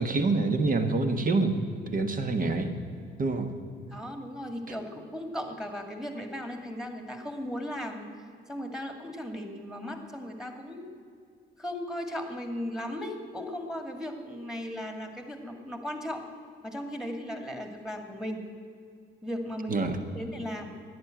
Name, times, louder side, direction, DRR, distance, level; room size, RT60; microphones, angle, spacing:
voice 1, 0.0-1.6 1.9-2.7 3.2-3.5 19.7-20.0, right 3 dB, 45° right, 7 dB, 1.5 m, -26 dB
voice 2, 3.9-8.1 8.5-10.9 11.6-16.3 16.6-18.4 19.2-19.8 20.1-20.7, equal, 5° right, 5 dB, 2.1 m, -36 dB
11.0 x 9.7 x 9.1 m, 2.4 s
cardioid pair, 90°, 20 cm